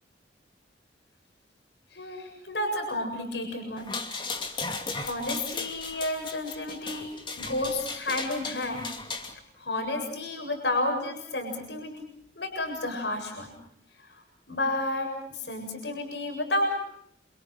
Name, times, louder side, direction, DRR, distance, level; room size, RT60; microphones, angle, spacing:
voice 1, 1.9-3.9 4.9-7.1 7.3-8.9 9.6-12.0 12.4-13.5 14.1-14.2 14.5-16.8, left 1 dB, 75° left, 3 dB, 7.4 m, -31 dB
sound 1, 3.8-9.3, left 3 dB, 25° left, 2.7 m, -36 dB
28.0 x 28.0 x 5.9 m, 0.67 s
head